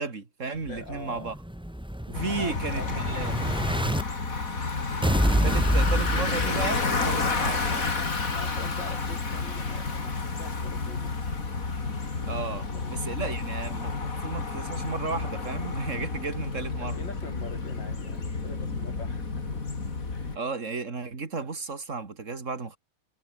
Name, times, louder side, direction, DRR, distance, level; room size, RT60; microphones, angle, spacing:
voice 1, 0.0-1.3 2.1-3.3 5.4-8.0 12.2-17.1 20.3-22.8, right 4 dB, 45° right, 2.8 m, -34 dB
voice 2, 0.7-1.3 2.3-3.7 8.3-11.2 12.5-13.0 16.8-19.6 20.1-20.4, left 3 dB, 90° left, 5.5 m, -44 dB
Explosion, 0.7-4.0 5.0-7.0, equal, 5° right, 1.8 m, -27 dB
Bicycle, 2.1-20.4, left 4 dB, 50° left, 3.4 m, -31 dB
omnidirectional pair, 1.9 m